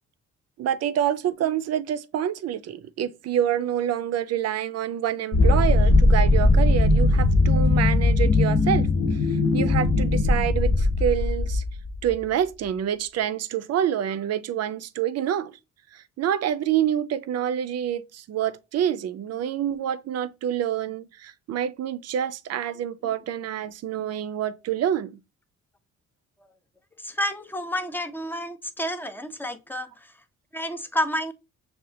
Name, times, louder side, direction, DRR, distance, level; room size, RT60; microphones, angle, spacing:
voice 1, 0.6-11.6 12.0-15.5 15.9-25.2, right 10 dB, 55° right, 0.5 m, -27 dB
sound 1, 5.3-12.1, left 2 dB, 45° left, 0.9 m, -19 dB
voice 2, 27.0-30.1 30.5-31.3, equal, 5° left, 0.5 m, -30 dB
6.4 x 2.4 x 2.7 m
cardioid pair, 90°, 30 cm